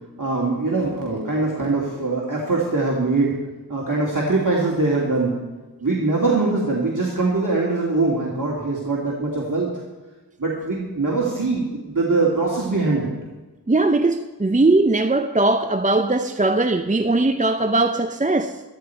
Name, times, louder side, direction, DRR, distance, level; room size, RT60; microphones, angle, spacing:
voice 1, 0.2-3.4 3.7-5.3 5.8-9.7 10.4-13.1, right 3 dB, 50° right, 2.4 m, -22 dB
voice 2, 13.7-18.6, right 2 dB, 20° right, 0.6 m, -19 dB
13.5 x 13.0 x 4.5 m
wide cardioid pair, 45°, 40 cm